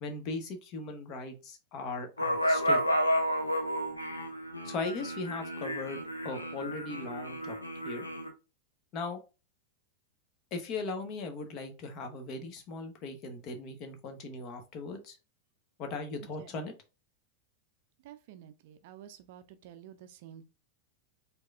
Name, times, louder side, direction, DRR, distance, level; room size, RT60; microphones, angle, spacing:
voice 1, 0.0-2.8 4.6-7.6 7.8-8.0 8.9-9.2 10.5-15.2 15.8-16.7, left 3 dB, 40° left, 0.9 m, -38 dB
sound 1, 2.2-8.3, equal, 85° left, 0.7 m, -31 dB
voice 2, 18.0-20.5, right 10 dB, 50° right, 0.4 m, -50 dB
4.6 x 2.7 x 2.3 m
figure-of-eight pair, 90°, 0 cm